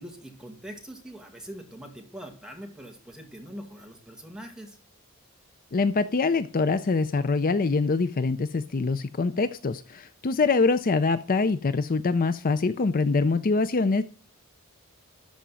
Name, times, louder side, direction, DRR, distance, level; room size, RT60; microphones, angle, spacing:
voice 1, 0.0-4.8, equal, 5° right, 2.1 m, -43 dB
voice 2, 5.7-14.0, left 4 dB, 40° left, 0.5 m, -24 dB
12.5 x 5.1 x 7.5 m
head